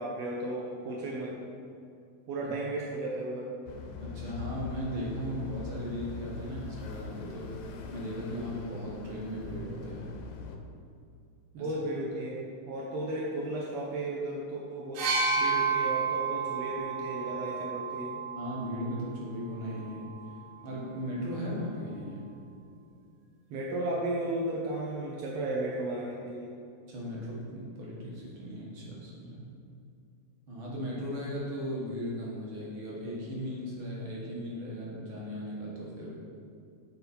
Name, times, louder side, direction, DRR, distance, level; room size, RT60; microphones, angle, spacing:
voice 1, 0.0-1.3 2.3-3.5 11.5-15.0 15.4-18.2 23.5-26.5, right 1 dB, 70° right, -4 dB, 1.4 m, -34 dB
sound 1, 3.7-10.6, left 4 dB, 85° left, 1.4 m, -41 dB
voice 2, 4.0-10.1 11.6-11.7 18.4-20.1 20.6-22.3 26.9-29.5 30.5-36.1, equal, 50° right, -5 dB, 1.9 m, -37 dB
sound 2, 15.0-18.8 19.8-20.0, right 5 dB, 90° right, 2.5 m, -30 dB
8.0 x 4.2 x 4.3 m, 2.4 s
omnidirectional pair, 3.3 m